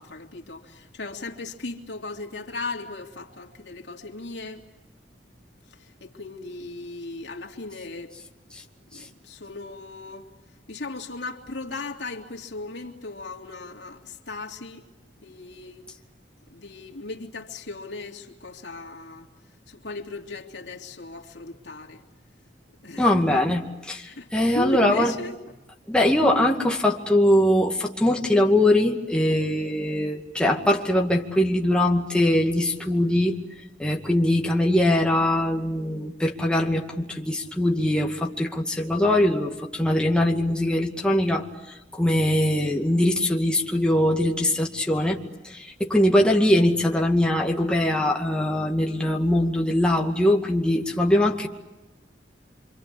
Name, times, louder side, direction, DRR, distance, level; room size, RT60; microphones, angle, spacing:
voice 1, 0.0-4.7 5.7-8.1 8.9-10.3 10.7-14.9 15.2-15.8 16.5-19.3 19.7-22.0 22.8-23.4 24.0-24.3 24.5-25.3, left 3 dB, 75° left, 3.1 m, -37 dB
voice 2, 23.0-24.1 24.3-25.1 25.9-33.4 33.8-41.5 41.9-45.2 45.4-51.5, left 1 dB, 5° left, 2.3 m, -22 dB
26.5 x 26.0 x 8.5 m
head